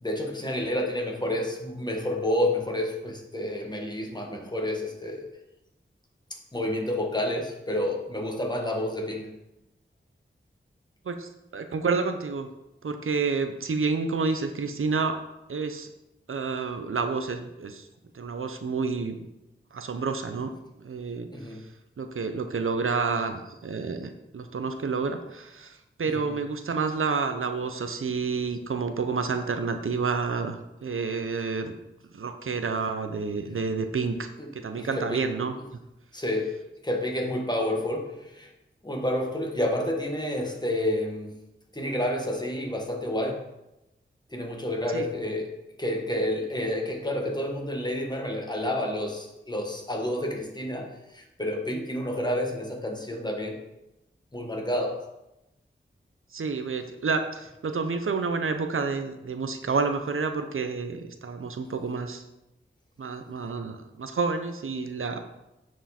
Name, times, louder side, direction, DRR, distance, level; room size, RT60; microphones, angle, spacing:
voice 1, 0.0-5.3 6.5-9.3 21.3-21.6 26.1-26.3 34.4-34.5 34.7-35.3 36.1-36.5 36.8-38.5 38.8-41.3 41.7-43.4 44.3-45.5 45.8-53.6 54.3-55.0, left 1 dB, 20° left, 1 dB, 1.5 m, -29 dB
voice 2, 11.1-12.5 12.8-15.1 15.5-15.9 16.3-17.9 18.1-19.3 19.7-20.5 20.8-21.3 22.0-31.8 32.1-34.3 34.5-35.5 44.9-45.1 56.3-62.2 63.0-65.2, right 4 dB, 75° right, 7 dB, 0.7 m, -29 dB
9.1 x 4.7 x 4.3 m, 0.94 s
wide cardioid pair, 60°, 21 cm